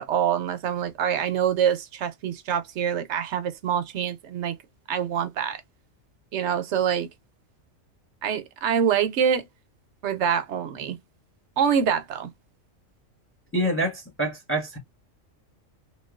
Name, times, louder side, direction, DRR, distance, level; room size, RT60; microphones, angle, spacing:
voice 1, 0.0-4.5 4.9-5.6 6.3-7.1 8.2-9.5 10.0-11.0 11.6-12.3, right 8 dB, 70° right, 0.9 m, -25 dB
voice 2, 13.5-14.8, right 1 dB, 10° left, 0.8 m, -26 dB
3.1 x 2.3 x 2.3 m
omnidirectional pair, 1.3 m